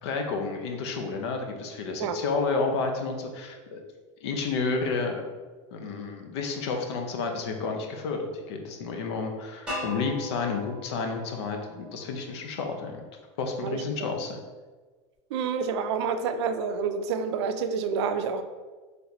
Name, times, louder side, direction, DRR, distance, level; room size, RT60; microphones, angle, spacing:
voice 1, 0.0-3.8 4.2-5.3 5.7-13.0 13.4-14.4, left 4 dB, 65° left, 3 dB, 0.6 m, -31 dB
sound 1, 9.7-12.6, left 2 dB, 5° right, 1.2 m, -39 dB
voice 2, 15.3-18.4, right 6 dB, 70° right, 9 dB, 0.4 m, -28 dB
4.0 x 3.3 x 2.9 m, 1.4 s
supercardioid pair, 170°, 15 cm